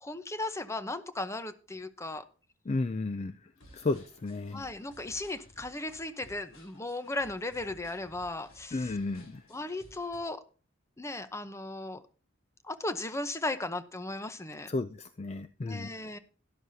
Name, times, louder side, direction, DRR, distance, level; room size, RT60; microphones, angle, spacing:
voice 1, 0.0-2.2 4.5-9.0 9.5-10.4 11.0-12.0 12.6-14.7 15.7-16.2, left 2 dB, 15° left, 0.8 m, -36 dB
voice 2, 2.7-3.3 3.7-4.7 8.7-9.4 14.7-15.9, left 3 dB, 30° left, 0.4 m, -33 dB
sound 1, 3.6-10.2, left 1 dB, 75° left, 4.3 m, -57 dB
12.5 x 12.0 x 2.8 m
head